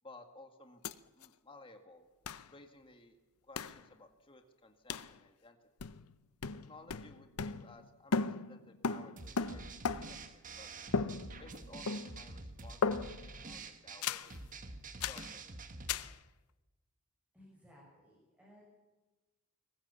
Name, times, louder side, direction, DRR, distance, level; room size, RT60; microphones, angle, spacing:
voice 1, 0.0-0.8 1.1-2.1 2.5-3.2 3.4-5.9 6.7-9.6 9.9-10.7 11.4-14.4 15.0-15.4, left 2 dB, 25° left, 5 dB, 1.9 m, -57 dB
sound 1, 0.8-0.9 1.2-1.3 2.3-2.5 3.6-3.8 4.9-5.1 5.8-6.1 6.4-7.9 8.1-10.3 10.9-11.6 11.9-12.3 12.8-13.3 14.0-14.3 15.0-15.3 15.9-16.2, left 4 dB, 80° left, 0.7 m, -36 dB
sound 2, 9.2-16.0, right 3 dB, 35° right, 1.5 m, -47 dB
voice 2, 17.3-18.7, equal, 5° right, -5 dB, 6.6 m, -60 dB
23.0 x 19.5 x 7.1 m, 1.2 s
head